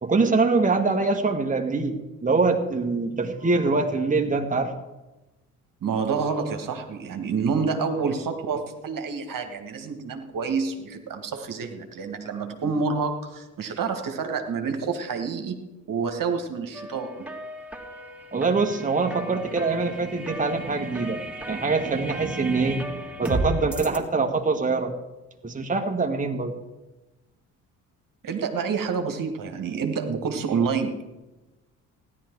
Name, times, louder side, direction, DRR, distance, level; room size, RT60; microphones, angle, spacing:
voice 1, 0.0-4.7 18.3-24.9 25.4-26.5, right 3 dB, 20° right, 3 dB, 1.6 m, -24 dB
voice 2, 5.8-15.6 15.9-17.3 28.2-31.0, right 5 dB, 50° right, 5 dB, 1.9 m, -28 dB
sound 1, 16.7-24.0, right 1 dB, 5° right, 2.6 m, -34 dB
16.0 x 11.0 x 4.7 m, 1.1 s
hypercardioid pair, 45°, 43 cm